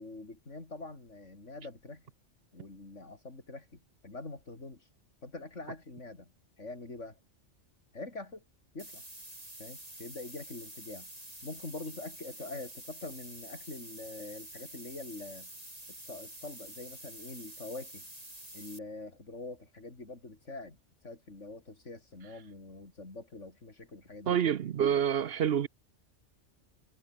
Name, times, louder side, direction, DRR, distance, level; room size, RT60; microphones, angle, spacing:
voice 1, 0.0-2.1 2.5-4.8 5.2-6.3 6.6-7.2 7.9-8.4 8.7-9.0 9.6-11.1 11.4-15.5 15.9-18.1 18.5-20.8 21.0-24.4, left 2 dB, 80° left, 4.4 m, -44 dB
sound 1, 8.8-18.8, right 1 dB, 30° right, 5.5 m, -48 dB
voice 2, 24.3-25.7, right 9 dB, 60° right, 0.9 m, -27 dB
omnidirectional pair, 1.2 m